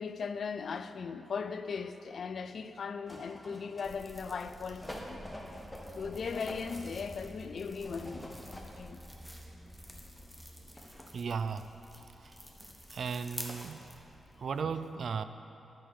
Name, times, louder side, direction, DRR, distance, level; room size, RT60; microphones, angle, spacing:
voice 1, 0.0-5.2 6.0-9.0, left 5 dB, 65° left, 0.4 m, -38 dB
sound 1, 3.1-4.2 4.8-6.9 7.7-8.7 9.1-9.2, equal, 20° left, 1.4 m, -46 dB
sound 2, 3.8-14.6, equal, 5° left, 1.4 m, -49 dB
voice 2, 11.1-11.7 12.2-12.3 12.9-13.8 14.4-15.2, right 5 dB, 65° right, 0.4 m, -35 dB
10.5 x 4.6 x 6.5 m
supercardioid pair, 40°, 0 cm